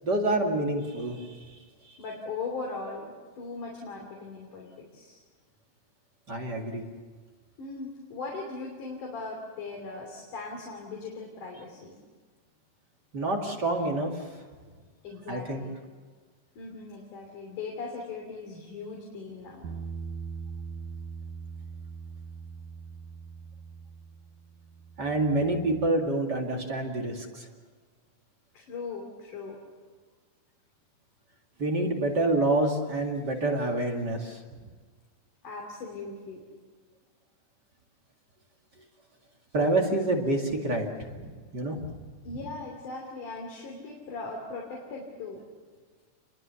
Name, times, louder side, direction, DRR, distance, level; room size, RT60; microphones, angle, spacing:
voice 1, 0.0-1.6 1.8-2.0 6.3-6.8 13.1-14.3 15.3-15.6 25.0-27.5 31.6-34.4 39.5-41.8, right 2 dB, 35° right, 1 dB, 2.5 m, -27 dB
voice 2, 2.0-5.2 7.6-12.0 15.0-15.7 16.6-19.7 28.5-29.6 35.4-36.4 42.2-45.4, left 3 dB, 80° left, 0 dB, 4.5 m, -39 dB
Bass guitar, 19.6-25.9, right 5 dB, 80° right, 2.5 m, -41 dB
29.0 x 22.0 x 7.0 m, 1.5 s
omnidirectional pair, 3.6 m